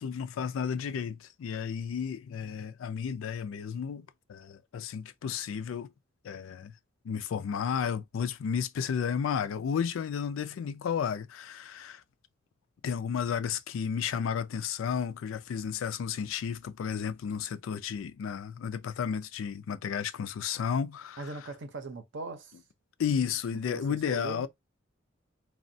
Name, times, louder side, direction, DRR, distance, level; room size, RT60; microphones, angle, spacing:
voice 1, 0.0-5.9 6.2-6.7 7.0-12.0 12.8-21.3 23.0-24.5, left 7 dB, 85° left, 0.3 m, -32 dB
voice 2, 21.2-22.5 23.7-24.5, right 3 dB, 65° right, 0.6 m, -40 dB
2.9 x 2.1 x 2.6 m
head